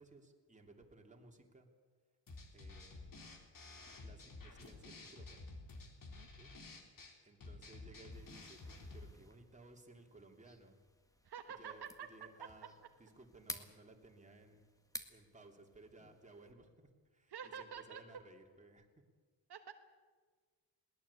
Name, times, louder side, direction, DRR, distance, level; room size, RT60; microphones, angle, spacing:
voice 1, 0.0-1.7 2.5-3.1 3.8-5.5 6.4-6.5 6.8-6.9 7.2-10.8 11.6-12.7 13.0-14.7 15.1-18.9, right 2 dB, 15° right, 2 dB, 3.0 m, -60 dB
sound 1, 2.3-9.1, left 3 dB, 45° left, 3.5 m, -52 dB
sound 2, 8.1-16.5, left 1 dB, 10° left, 1.7 m, -54 dB
voice 2, 11.2-12.1 17.3-18.0 19.5-19.7, right 7 dB, 60° right, 5 dB, 1.5 m, -48 dB
21.5 x 18.5 x 8.4 m, 1.5 s
cardioid pair, 115°, 44 cm